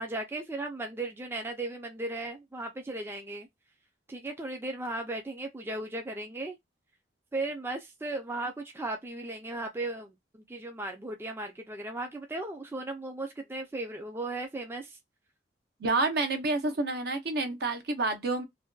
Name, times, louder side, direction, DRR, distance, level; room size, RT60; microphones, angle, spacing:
voice 1, 0.0-3.5 4.1-6.6 7.3-15.0, right 2 dB, 15° right, 0.4 m, -36 dB
voice 2, 15.8-18.4, right 3 dB, 60° right, 0.6 m, -29 dB
2.5 x 2.1 x 2.3 m
head